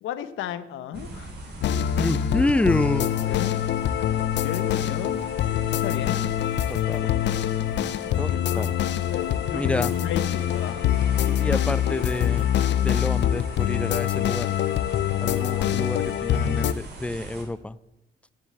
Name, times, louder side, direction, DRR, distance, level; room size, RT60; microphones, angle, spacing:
voice 1, 0.0-1.3 3.3-3.6 4.4-6.3 8.1-8.7 9.1-11.3, left 10 dB, 85° left, 12 dB, 0.9 m, -35 dB
sound 1, 0.9-17.4, right 1 dB, 55° right, 3.4 m, -41 dB
sound 2, 1.6-16.7, left 11 dB, 65° left, 0.5 m, -25 dB
voice 2, 1.9-3.1 5.9-6.2 6.7-7.1 8.2-8.7 9.5-9.9 11.3-12.5 12.8-14.5 15.2-17.8, left 1 dB, 5° left, 18 dB, 0.4 m, -28 dB
9.8 x 7.4 x 7.5 m, 0.94 s
cardioid pair, 90°, 20 cm